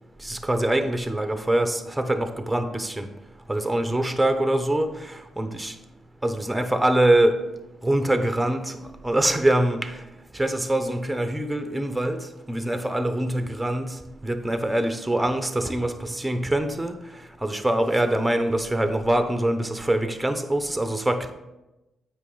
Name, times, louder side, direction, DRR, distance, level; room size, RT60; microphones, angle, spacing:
voice 1, 0.2-3.1 3.5-5.7 6.2-7.4 7.8-8.8 9.0-10.0 10.3-12.2 12.5-14.0 14.2-16.9 17.4-21.3, right 1 dB, 10° right, 8 dB, 0.8 m, -24 dB
8.3 x 5.0 x 3.9 m, 0.99 s
hypercardioid pair, 45°, 0 cm